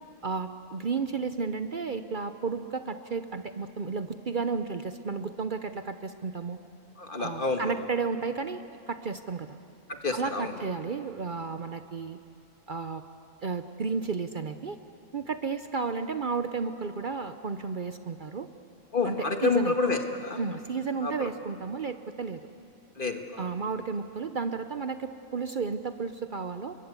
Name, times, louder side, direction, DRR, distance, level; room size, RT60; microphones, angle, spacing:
voice 1, 0.2-6.6 7.2-8.6 8.9-9.6 10.1-12.2 12.7-13.0 13.4-14.8 15.1-18.5 19.0-19.7 20.4-22.5 23.4-26.8, right 5 dB, 45° right, 9 dB, 0.8 m, -32 dB
voice 2, 7.0-7.7 9.9-10.5 18.9-20.4 21.0-21.3 23.0-23.4, left 4 dB, 45° left, 5 dB, 1.9 m, -29 dB
30.0 x 22.0 x 8.3 m, 2.6 s
omnidirectional pair, 1.3 m